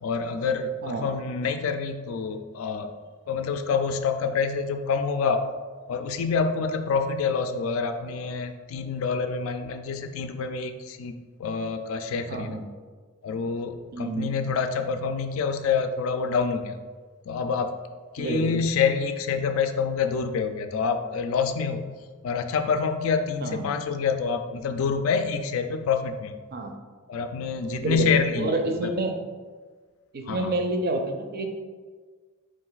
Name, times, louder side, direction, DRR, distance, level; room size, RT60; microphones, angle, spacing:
voice 1, 0.0-2.9 3.3-5.4 5.9-12.6 13.2-16.8 17.3-17.8 18.1-21.9 22.2-26.4 27.1-28.9 30.3-30.5, left 5 dB, 70° left, 8 dB, 0.3 m, -27 dB
voice 2, 12.3-12.6 13.9-14.3 18.2-18.6 23.4-23.6 26.5-26.7 27.8-28.1 28.4-29.1 30.1-31.5, right 2 dB, 45° right, 4 dB, 0.5 m, -28 dB
4.5 x 2.4 x 3.9 m, 1.5 s
head